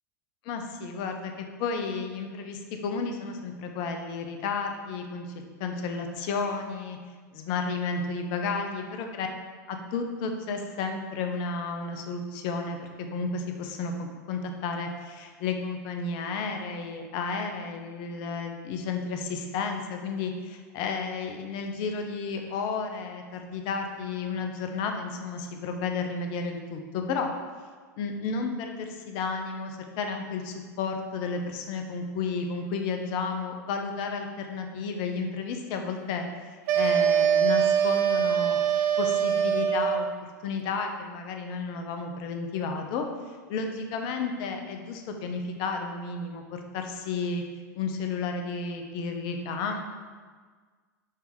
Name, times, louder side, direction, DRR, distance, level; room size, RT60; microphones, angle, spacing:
voice 1, 0.4-5.2 5.6-7.0 7.3-9.3 9.7-12.8 13.1-27.3 28.0-38.6 39.0-43.1 43.5-47.4 47.7-49.8, left 4 dB, 50° left, 4 dB, 0.8 m, -32 dB
sound 1, 36.7-40.2, right 8 dB, 55° right, 0.5 m, -23 dB
6.0 x 3.4 x 4.7 m, 1.5 s
hypercardioid pair, 100°, 10 cm